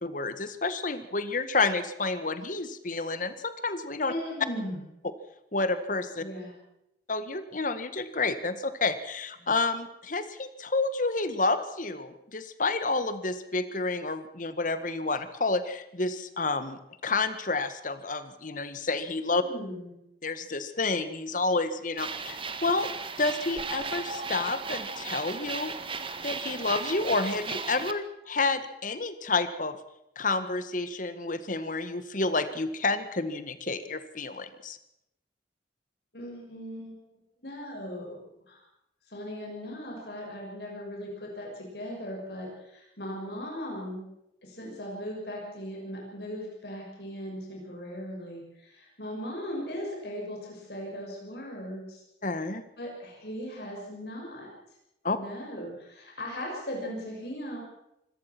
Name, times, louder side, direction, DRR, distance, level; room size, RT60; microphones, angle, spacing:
voice 1, 0.0-4.1 5.5-6.2 7.1-19.4 20.2-22.9 23.2-25.7 26.2-29.8 30.2-34.8 52.2-52.6 55.0-55.2, left 3 dB, 45° left, 11 dB, 1.8 m, -29 dB
voice 2, 4.1-4.8 6.2-6.5 9.4-9.5 19.5-20.0 36.1-36.9 37.4-38.6 39.1-44.0 44.4-52.0 52.8-54.5 55.1-57.6, equal, 65° left, -1 dB, 6.5 m, -38 dB
sound 1, 22.0-27.9, right 4 dB, 30° right, 1.7 m, -36 dB
25.5 x 17.5 x 6.1 m, 0.83 s
head